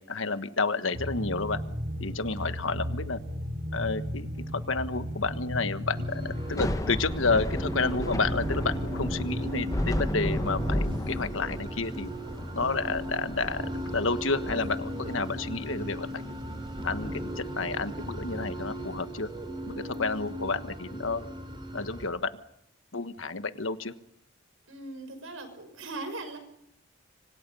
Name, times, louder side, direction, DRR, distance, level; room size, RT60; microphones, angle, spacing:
voice 1, 0.0-1.6 2.0-3.2 3.7-12.1 12.5-16.2 16.8-19.3 19.6-21.2 21.7-22.3 22.9-23.9, left 4 dB, 80° left, 11 dB, 1.3 m, -30 dB
sound 1, 0.9-11.0, equal, 55° right, 2.0 m, -35 dB
sound 2, 5.9-22.1, right 1 dB, 25° right, 4.7 m, -37 dB
Thunder / Rain, 6.4-19.5, left 1 dB, 15° left, 1.0 m, -36 dB
voice 2, 24.7-26.4, right 2 dB, 90° right, 8 dB, 5.6 m, -39 dB
26.0 x 25.5 x 5.6 m, 0.74 s
head